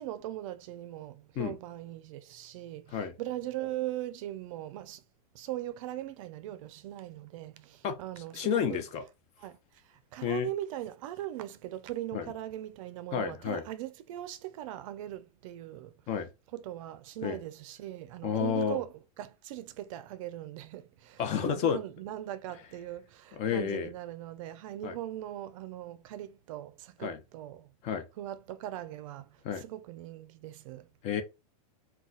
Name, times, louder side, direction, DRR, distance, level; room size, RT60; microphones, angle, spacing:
voice 1, 0.0-5.0 5.3-8.8 9.4-9.6 9.9-15.9 16.5-27.7 28.2-30.9, right 13 dB, 55° right, 0.4 m, -40 dB
voice 2, 8.3-9.0 10.2-10.5 12.1-12.3 13.1-13.6 16.1-16.3 17.2-17.4 18.2-18.8 21.2-21.8 23.3-23.9 24.8-24.9 27.0-27.2 27.8-28.0 29.4-29.6 31.0-31.2, left 7 dB, 35° left, 0.6 m, -30 dB
2.4 x 2.3 x 3.9 m
supercardioid pair, 140°, 20 cm